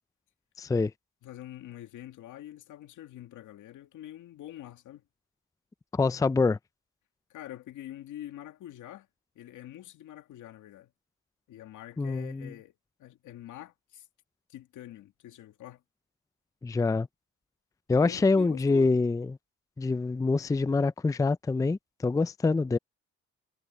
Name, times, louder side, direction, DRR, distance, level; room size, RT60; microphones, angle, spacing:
voice 1, 0.6-0.9 5.9-6.6 12.0-12.5 16.6-17.1 17.9-19.3 19.8-22.8, left 3 dB, 10° left, 0.5 m, -25 dB
voice 2, 1.2-5.0 7.3-9.1 9.4-10.9 11.5-12.7 13.0-14.1 14.5-15.8 17.9-18.9, left 13 dB, 80° left, 2.2 m, -45 dB
cardioid pair, 90°, 30 cm